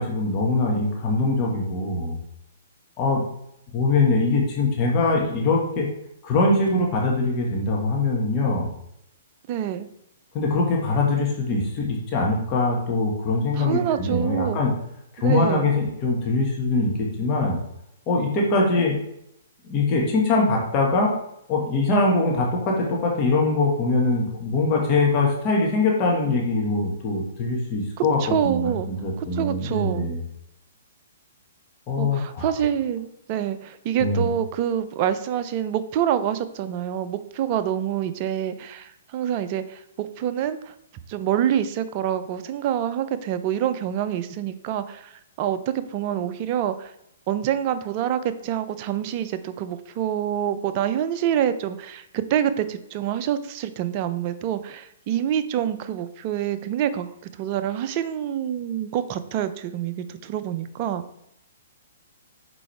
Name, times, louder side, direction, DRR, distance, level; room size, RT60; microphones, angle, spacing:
voice 1, 0.0-2.2 3.0-3.2 3.7-5.9 6.2-8.7 10.3-14.7 15.1-17.6 18.1-19.0 19.6-21.1 21.5-30.2 31.9-32.5 34.0-34.3, left 3 dB, 30° left, -2 dB, 1.6 m, -22 dB
voice 2, 9.5-9.9 13.5-14.6 15.2-15.7 28.2-28.9 29.2-30.1 32.0-40.7 41.1-46.9 47.3-57.1 57.4-61.0, right 10 dB, 40° right, 11 dB, 0.5 m, -26 dB
6.0 x 4.7 x 3.4 m, 0.76 s
hypercardioid pair, 125°, 0 cm